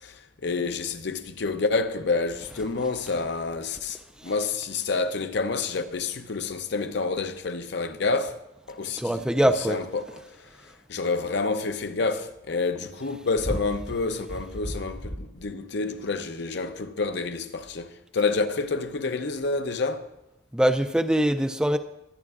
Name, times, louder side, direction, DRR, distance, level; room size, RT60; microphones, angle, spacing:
voice 1, 0.0-8.4 8.7-10.2 10.9-20.1, left 3 dB, 60° left, 0.7 m, -28 dB
voice 2, 9.0-9.8 20.5-21.8, equal, 5° right, 0.3 m, -23 dB
21.5 x 9.6 x 2.4 m
head